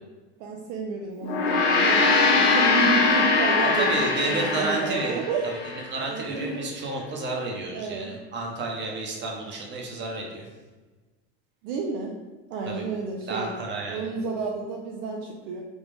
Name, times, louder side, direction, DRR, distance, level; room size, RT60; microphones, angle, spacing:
voice 1, 0.4-5.7 6.1-6.6 7.7-8.1 9.2-9.3 11.6-12.2 12.5-13.5 13.9-15.6, right 4 dB, 65° right, 1 dB, 0.5 m, -31 dB
Gong, 1.2-5.8, left 3 dB, 85° left, 0.7 m, -22 dB
voice 2, 3.7-5.2 5.9-10.5 12.6-12.8 13.3-14.1, right 2 dB, 35° right, 0 dB, 0.9 m, -31 dB
3.5 x 2.4 x 3.4 m, 1.3 s
supercardioid pair, 105°, 32 cm